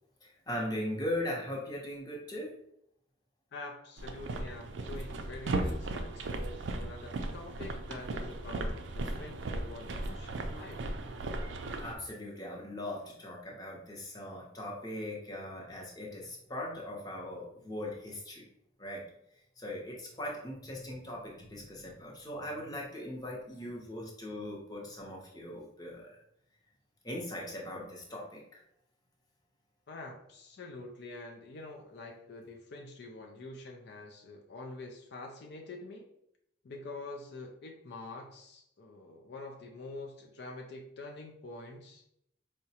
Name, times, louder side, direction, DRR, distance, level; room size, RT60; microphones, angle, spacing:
voice 1, 0.2-2.5 11.8-18.5 18.8-19.0 19.6-26.2 27.0-28.6, left 1 dB, 20° left, -2 dB, 0.7 m, -39 dB
voice 2, 3.5-10.8 29.9-36.1 36.6-42.0, left 2 dB, 60° left, 1 dB, 0.4 m, -46 dB
sound 1, 4.0-12.0, right 2 dB, 70° right, 0.4 m, -36 dB
4.7 x 2.1 x 2.8 m, 0.76 s
head